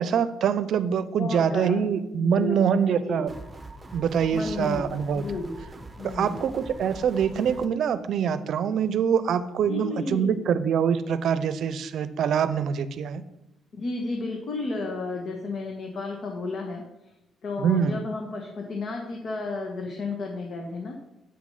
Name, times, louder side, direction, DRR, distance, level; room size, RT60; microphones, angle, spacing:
voice 1, 0.0-3.3 3.9-5.2 6.0-13.2 17.6-18.0, right 7 dB, 70° right, 14 dB, 0.6 m, -24 dB
voice 2, 1.2-1.9 2.2-3.2 4.3-4.8 5.1-5.5 6.0-6.4 9.7-10.4 13.8-16.8 17.4-21.0, left 3 dB, 60° left, 1 dB, 1.3 m, -32 dB
sound 1, 3.3-7.7, right 2 dB, 20° right, 1.0 m, -43 dB
8.0 x 6.3 x 5.5 m, 0.90 s
cardioid pair, 90°, 0 cm